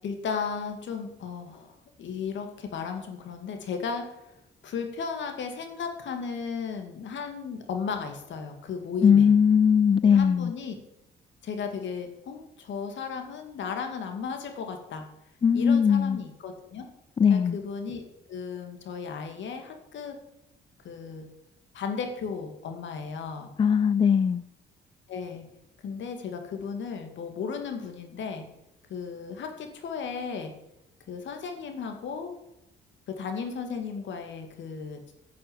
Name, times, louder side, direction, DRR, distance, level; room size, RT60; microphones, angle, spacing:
voice 1, 0.0-4.3 4.6-9.3 10.0-10.7 11.4-15.1 15.5-16.9 17.3-18.0 18.3-20.2 20.8-21.3 21.7-23.5 25.1-25.4 25.8-28.5 28.9-30.5 31.1-32.3 33.1-35.0, left 6 dB, 70° left, 2.4 m, -35 dB
voice 2, 9.0-10.5 15.4-16.2 17.2-17.6 23.6-24.4, left 7 dB, 25° left, 0.4 m, -20 dB
11.0 x 6.7 x 9.0 m
cardioid pair, 90°, 20 cm